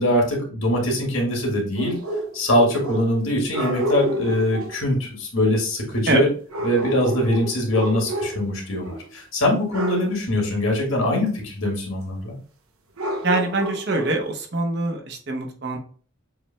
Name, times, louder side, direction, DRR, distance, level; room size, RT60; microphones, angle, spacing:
voice 1, 0.0-2.0 2.3-6.3 6.6-12.3, left 1 dB, 75° left, 0 dB, 1.9 m, -22 dB
sound 1, 1.8-3.2 3.5-4.8 6.5-8.5 8.8-9.1 9.7-10.1 13.0-14.3, right 1 dB, 90° right, 0.9 m, -29 dB
voice 2, 13.2-15.8, right 2 dB, 50° right, 3 dB, 0.9 m, -24 dB
7.0 x 3.2 x 2.2 m, 0.43 s
head